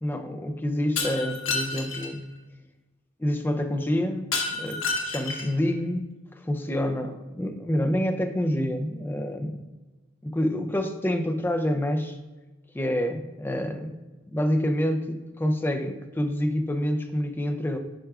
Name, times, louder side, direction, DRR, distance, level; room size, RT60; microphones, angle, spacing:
voice 1, 0.0-2.2 3.2-6.1 6.4-9.6 10.2-12.2 12.7-14.0 14.3-17.8, equal, 10° left, 7 dB, 0.4 m, -27 dB
Shatter, 1.0-2.1 4.3-5.6, left 4 dB, 85° left, 1.0 m, -29 dB
9.9 x 4.6 x 2.3 m, 1.2 s
head